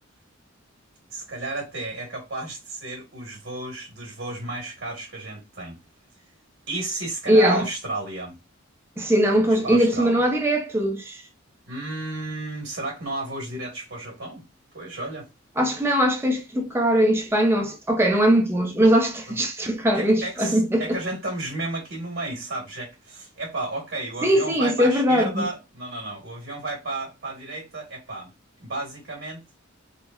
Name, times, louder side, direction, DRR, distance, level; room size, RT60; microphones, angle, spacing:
voice 1, 1.1-5.8 6.7-8.4 9.6-10.2 11.7-14.4 14.7-15.3 19.3-19.4 19.9-28.3 28.6-29.4, right 2 dB, 60° right, 1.1 m, -33 dB
voice 2, 7.3-7.7 9.0-11.2 15.6-21.0 24.2-25.5, equal, 10° right, 0.5 m, -21 dB
3.0 x 2.0 x 2.2 m
head